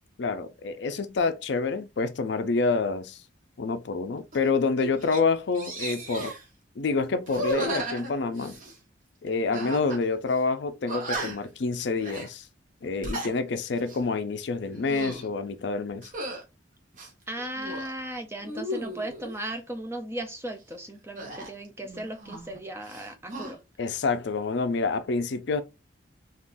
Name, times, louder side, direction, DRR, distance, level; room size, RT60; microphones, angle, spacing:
voice 1, 0.2-3.2 3.6-6.3 6.8-8.6 9.2-12.5 12.8-16.1 23.8-25.6, left 4 dB, 65° left, 0.4 m, -27 dB
sound 1, 4.3-4.5 4.8-5.2 5.5-6.4 7.2-8.8 9.5-10.0 10.3-10.4 10.9-11.5 12.0-12.3 12.8-13.3 13.8-14.0 14.7-15.3 16.0-16.4 16.9-17.9 18.4-19.4 21.2-22.6 22.8-23.5, right 1 dB, 40° right, 0.9 m, -35 dB
voice 2, 17.3-23.6, right 1 dB, 15° right, 0.4 m, -36 dB
3.6 x 2.4 x 2.5 m
head